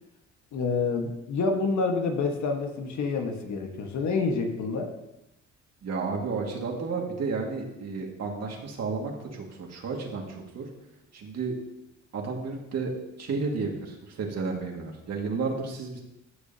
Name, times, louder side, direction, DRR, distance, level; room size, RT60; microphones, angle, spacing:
voice 1, 0.5-4.9 8.0-8.1, left 4 dB, 70° left, 3 dB, 1.5 m, -28 dB
voice 2, 5.8-10.7 11.1-11.5 12.1-12.9 13.2-16.0, right 4 dB, 60° right, 0 dB, 2.1 m, -32 dB
14.5 x 6.8 x 2.9 m, 0.89 s
cardioid pair, 90°, 30 cm